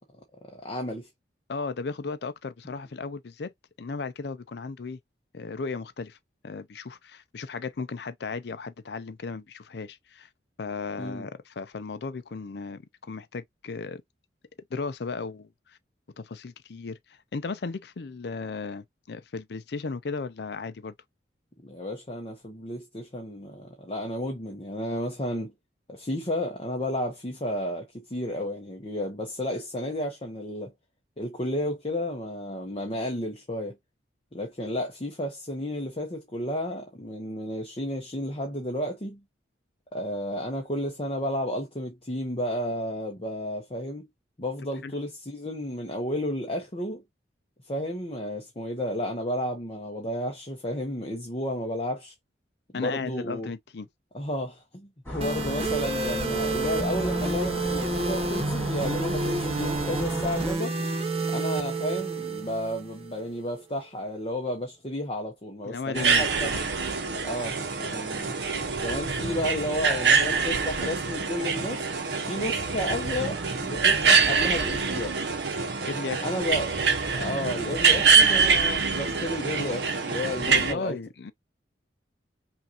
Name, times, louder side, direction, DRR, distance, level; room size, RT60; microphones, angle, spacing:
voice 1, 0.5-1.1 11.0-11.3 21.6-25.5 25.9-30.7 31.2-33.8 34.3-39.2 39.9-44.1 44.4-47.0 47.6-52.1 52.7-53.5 54.1-60.8 61.3-66.5 67.2-68.3 68.8-71.8 72.2-75.2 76.2-81.0, left 1 dB, 30° left, 0.9 m, -32 dB
voice 2, 1.5-3.5 3.8-5.0 5.3-6.2 6.4-10.3 10.6-14.0 14.7-15.8 16.2-20.9 44.8-44.9 52.7-53.9 65.6-66.6 75.8-76.3 80.5-81.3, left 4 dB, 60° left, 0.5 m, -35 dB
sound 1, 55.1-60.6, equal, 10° left, 2.5 m, -35 dB
sound 2, 55.2-63.2, right 3 dB, 30° right, 1.0 m, -29 dB
sound 3, 65.9-80.7, right 5 dB, 65° right, 0.9 m, -25 dB
5.7 x 2.5 x 2.8 m
head